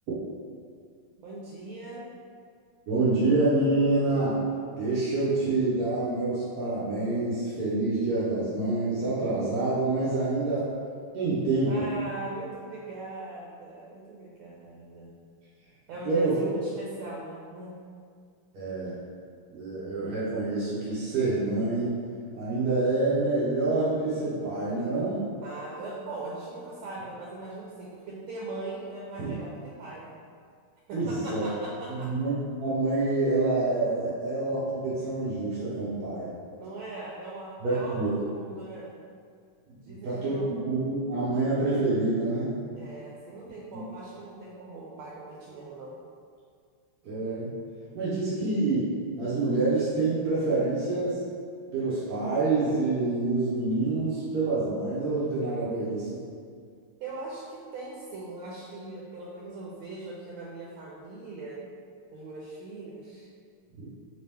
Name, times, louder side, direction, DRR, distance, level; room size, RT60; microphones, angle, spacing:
voice 1, 1.2-2.1 11.7-15.1 15.9-17.7 25.4-30.1 30.9-32.1 36.6-38.9 39.8-40.6 42.8-46.0 57.0-61.6 62.1-63.3, right 2 dB, 80° right, -4 dB, 1.4 m, -40 dB
voice 2, 2.9-4.4 4.8-10.7 11.1-11.9 16.0-16.3 18.5-19.0 19.5-22.0 22.3-25.2 29.2-29.3 30.9-31.6 31.9-32.3 32.6-36.4 37.6-38.2 39.9-42.6 43.7-43.8 47.0-47.5 47.9-48.9 49.2-51.2 51.7-56.1 63.8-63.9, right 2 dB, 60° right, -10 dB, 1.0 m, -27 dB
3.3 x 2.9 x 3.3 m, 2.2 s
omnidirectional pair, 2.3 m